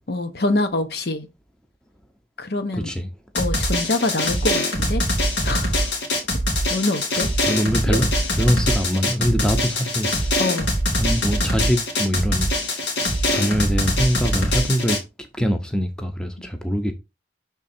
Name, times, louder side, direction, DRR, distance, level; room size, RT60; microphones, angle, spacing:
voice 1, 0.1-1.3 2.4-2.9 3.3-5.0 5.4-5.9 6.7-7.3 7.9-8.0 10.4-10.7, left 2 dB, 60° left, 0.8 m, -25 dB
Drum, 3.3-15.0, left 1 dB, 90° left, 1.9 m, -23 dB
voice 2, 7.5-10.4 11.0-12.5 13.3-15.0 15.4-16.9, equal, 5° left, 0.6 m, -23 dB
6.3 x 3.6 x 4.2 m
head